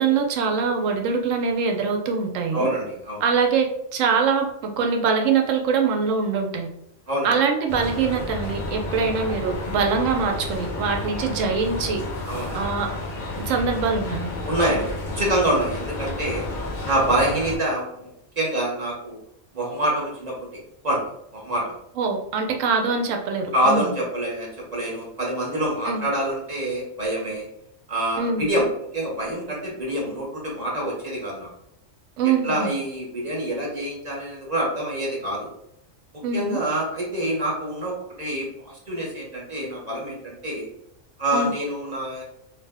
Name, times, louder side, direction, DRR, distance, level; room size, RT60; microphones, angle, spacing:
voice 1, 0.0-2.7 3.2-6.7 7.2-12.0 12.5-12.9 13.3-14.3 22.0-23.9 25.9-26.1 28.2-28.4 32.2-32.7 36.2-36.6 41.3-41.5, right 5 dB, 80° right, 3 dB, 0.9 m, -23 dB
voice 2, 2.5-3.2 7.1-7.3 12.3-12.6 14.4-14.9 15.2-16.4 16.8-18.1 18.4-19.2 19.5-20.5 20.8-21.0 21.3-21.7 23.5-27.5 27.9-28.7 28.9-31.5 32.2-35.5 36.3-40.7 41.2-42.2, right 1 dB, 40° right, -3 dB, 0.8 m, -26 dB
sound 1, 7.7-17.6, left 2 dB, 50° left, 0.7 m, -31 dB
2.8 x 2.1 x 3.3 m, 0.77 s
omnidirectional pair, 1.3 m